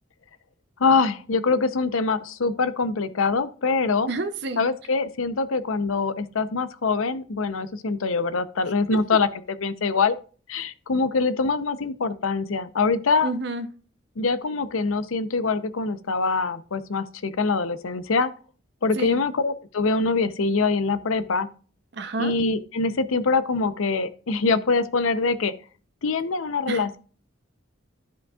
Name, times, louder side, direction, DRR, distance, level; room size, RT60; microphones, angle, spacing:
voice 1, 0.8-4.1 4.6-10.2 10.5-13.3 14.2-18.3 18.8-21.5 22.2-25.5 26.0-27.0, left 4 dB, 90° left, 0.7 m, -24 dB
voice 2, 4.1-4.6 13.2-13.7 19.0-19.2 21.9-22.3 26.7-27.0, right 2 dB, 55° right, 0.6 m, -29 dB
13.0 x 5.3 x 2.4 m
head